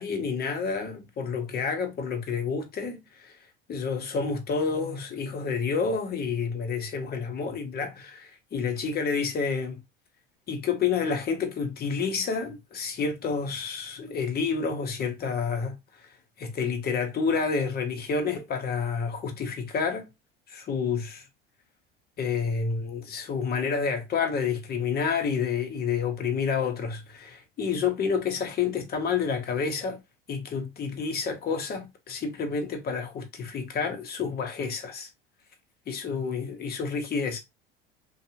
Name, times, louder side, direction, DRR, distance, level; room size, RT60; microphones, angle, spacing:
voice 1, 0.0-3.4 3.7-9.8 10.5-15.7 16.4-20.1 20.5-21.2 22.2-30.0 30.3-35.1 35.9-37.4, left 5 dB, 35° left, 0.9 m, -29 dB
2.6 x 2.3 x 2.8 m
hypercardioid pair, 80°, 29 cm